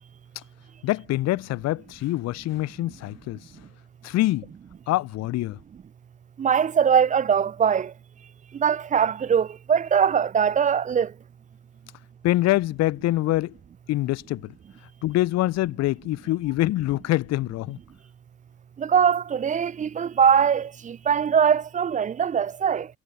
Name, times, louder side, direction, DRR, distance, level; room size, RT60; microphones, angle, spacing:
voice 1, 0.8-3.4 4.0-4.5 4.9-5.6 12.2-13.5 13.9-14.5 15.0-17.8, left 16 dB, 35° left, 0.6 m, -25 dB
voice 2, 6.4-7.9 8.6-11.1 18.8-22.9, right 7 dB, 15° right, 0.5 m, -21 dB
figure-of-eight pair, 60°, 46 cm